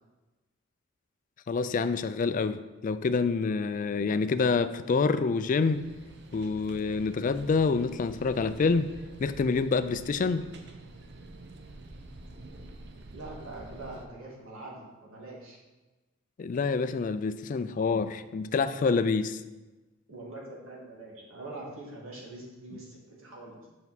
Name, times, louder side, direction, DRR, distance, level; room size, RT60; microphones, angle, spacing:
voice 1, 1.5-5.8 6.3-8.9 9.2-10.5 16.4-19.4, left 4 dB, 40° left, 13 dB, 0.3 m, -27 dB
sound 1, 5.7-14.1, right 2 dB, 55° right, 0.7 m, -47 dB
voice 2, 13.1-15.6 20.1-23.7, right 2 dB, 80° right, -3 dB, 2.0 m, -43 dB
7.1 x 5.6 x 4.1 m, 1.1 s
head